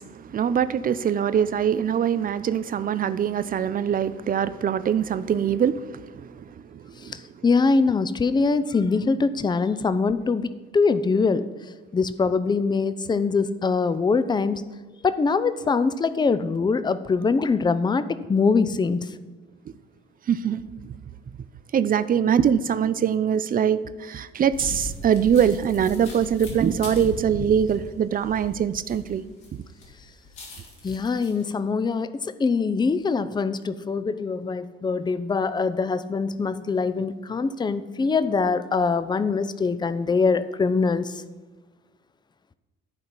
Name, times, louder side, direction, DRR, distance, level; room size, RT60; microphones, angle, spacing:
voice 1, 0.0-7.2 20.3-20.6 21.7-29.2, right 8 dB, 30° right, 0.5 m, -23 dB
voice 2, 7.0-11.4 11.9-14.6 15.0-19.1 30.8-41.2, left 4 dB, 15° left, 0.5 m, -23 dB
sound 1, 24.5-29.5 29.8-31.4, left 2 dB, 65° left, 2.6 m, -37 dB
11.5 x 5.2 x 5.9 m
figure-of-eight pair, 45°, 30 cm